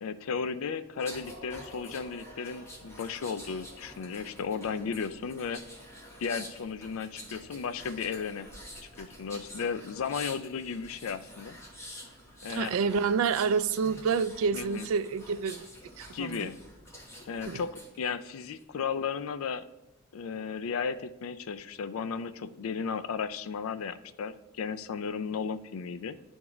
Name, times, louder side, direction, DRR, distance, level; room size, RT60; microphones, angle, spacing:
voice 1, 0.0-5.6 6.2-8.5 9.0-11.6 12.4-12.8 14.5-14.9 16.1-16.6 17.3-17.7 18.0-19.6 20.1-26.2, left 6 dB, 80° left, 12 dB, 0.4 m, -34 dB
sound 1, 1.0-18.0 18.4-18.6, equal, 15° left, 1.1 m, -48 dB
voice 2, 12.5-15.6 16.0-16.5 17.5-17.6, right 5 dB, 80° right, 14 dB, 0.3 m, -28 dB
10.5 x 3.6 x 3.0 m, 0.95 s
head